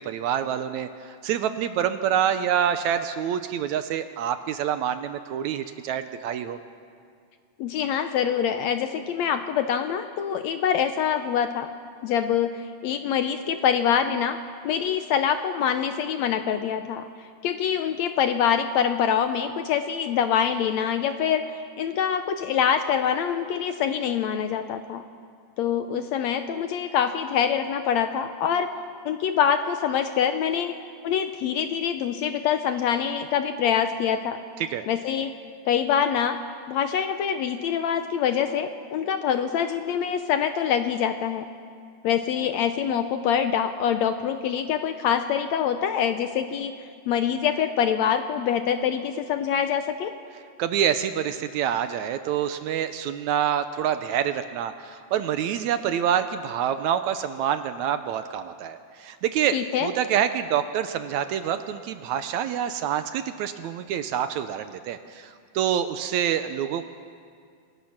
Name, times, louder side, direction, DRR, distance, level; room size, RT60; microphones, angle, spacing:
voice 1, 0.0-6.6 34.6-34.9 50.6-66.9, right 9 dB, 75° right, 10 dB, 1.9 m, -27 dB
voice 2, 7.6-11.7 12.0-14.4 14.6-17.1 17.4-21.5 21.8-25.0 25.6-28.7 29.0-30.7 31.0-34.4 34.9-35.3 35.6-36.4 36.7-41.5 42.0-46.7 47.1-50.1 59.5-59.9, left 8 dB, 75° left, 9 dB, 1.7 m, -25 dB
26.0 x 20.0 x 5.9 m, 2.2 s
omnidirectional pair, 3.7 m